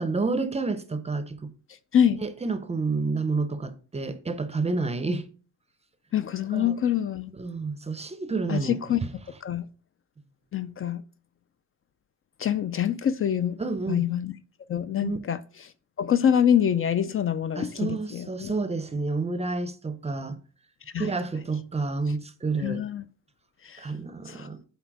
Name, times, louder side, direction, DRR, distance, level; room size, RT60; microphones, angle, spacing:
voice 1, 0.0-1.5 2.2-5.3 6.5-6.7 7.4-8.8 13.6-14.1 15.0-15.2 17.6-20.4 21.0-22.8 23.8-24.6, right 3 dB, 20° right, 0.5 m, -29 dB
voice 2, 6.1-7.3 8.5-9.0 9.4-9.7 10.5-11.0 12.4-13.6 13.9-14.3 14.7-15.4 16.0-18.5 20.9-21.1 22.6-23.0 23.6-23.9 24.3-24.5, left 9 dB, 45° left, 0.4 m, -25 dB
7.5 x 4.2 x 4.6 m
wide cardioid pair, 165°, 31 cm